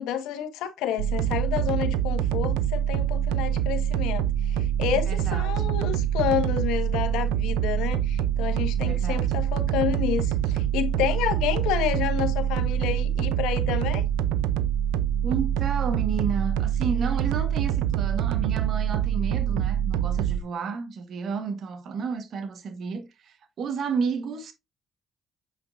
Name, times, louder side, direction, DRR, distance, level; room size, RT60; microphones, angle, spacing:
voice 1, 0.0-14.0, left 10 dB, 85° left, 1.4 m, -29 dB
sound 1, 1.0-20.4, right 10 dB, 90° right, 0.5 m, -25 dB
voice 2, 5.1-5.7 8.9-9.3 15.2-24.5, right 5 dB, 60° right, 1.4 m, -31 dB
8.0 x 5.3 x 2.5 m
supercardioid pair, 75°, 0 cm